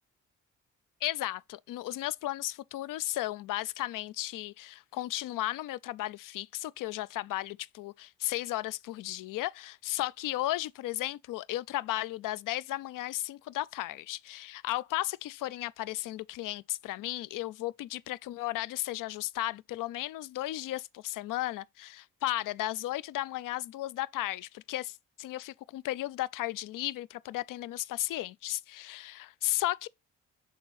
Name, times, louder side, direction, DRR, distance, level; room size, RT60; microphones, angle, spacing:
voice 1, 1.0-29.9, left 16 dB, 70° left, 0.5 m, -35 dB
6.4 x 3.9 x 4.0 m
supercardioid pair, 55°, 35 cm